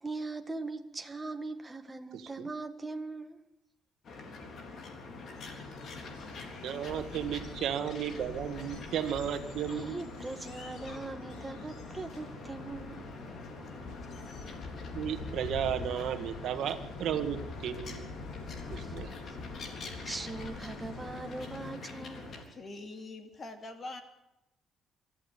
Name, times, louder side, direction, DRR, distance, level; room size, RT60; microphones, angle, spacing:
voice 1, 0.0-3.4 9.6-13.1 18.7-19.4 19.7-22.5, right 3 dB, 15° right, 1.6 m, -41 dB
sound 1, 4.0-22.4, left 3 dB, 45° left, 3.8 m, -45 dB
sound 2, 5.3-21.7, left 3 dB, 75° left, 4.6 m, -46 dB
voice 2, 6.6-10.0 14.9-18.1 18.7-19.1, right 9 dB, 65° right, 1.7 m, -34 dB
voice 3, 22.5-24.0, left 2 dB, 30° left, 2.8 m, -43 dB
24.0 x 14.5 x 8.5 m
cardioid pair, 145°, 0 cm